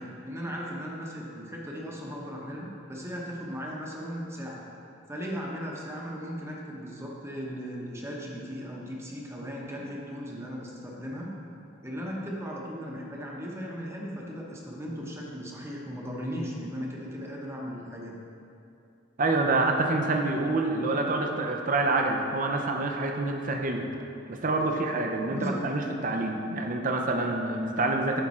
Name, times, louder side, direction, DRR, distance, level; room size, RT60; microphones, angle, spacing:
voice 1, 0.0-4.6 5.1-11.3 11.8-18.1 25.3-25.6, equal, 15° right, -2 dB, 0.9 m, -37 dB
voice 2, 19.2-23.9 24.3-28.2, right 2 dB, 45° right, 2 dB, 0.6 m, -27 dB
10.5 x 3.7 x 4.2 m, 2.7 s
head